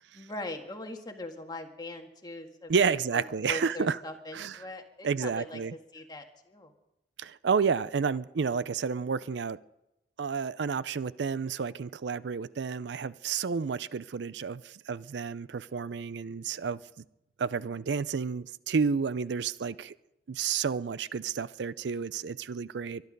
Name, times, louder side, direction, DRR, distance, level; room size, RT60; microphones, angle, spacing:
voice 1, 0.1-3.2 3.5-6.7, left 2 dB, 25° left, 1.8 m, -41 dB
voice 2, 2.7-4.0 4.3-4.6 5.0-5.7 7.2-9.6 10.2-16.8 17.4-19.9 20.3-23.0, right 5 dB, 75° right, 0.5 m, -30 dB
23.5 x 10.5 x 5.3 m
head